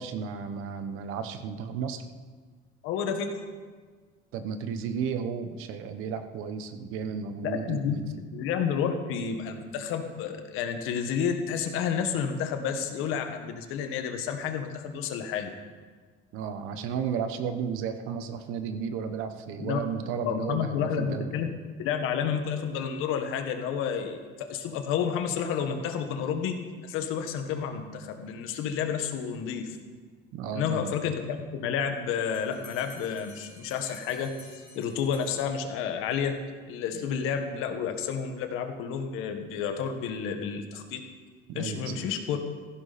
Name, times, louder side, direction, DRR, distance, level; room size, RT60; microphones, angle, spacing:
voice 1, 0.0-2.0 4.3-8.2 16.3-21.3 30.3-31.0 36.9-37.1 41.5-42.0, right 7 dB, 85° right, 9 dB, 1.2 m, -33 dB
voice 2, 2.8-3.4 7.4-8.0 8.3-15.5 19.6-19.8 20.2-21.5 21.8-29.7 30.5-31.1 31.5-34.3 34.7-36.4 36.7-41.0 41.5-42.4, left 7 dB, 90° left, 6 dB, 1.7 m, -30 dB
Bell, 32.3-36.0, left 3 dB, 35° left, 4.6 m, -52 dB
16.5 x 15.5 x 4.3 m, 1.5 s
cardioid pair, 170°, 21 cm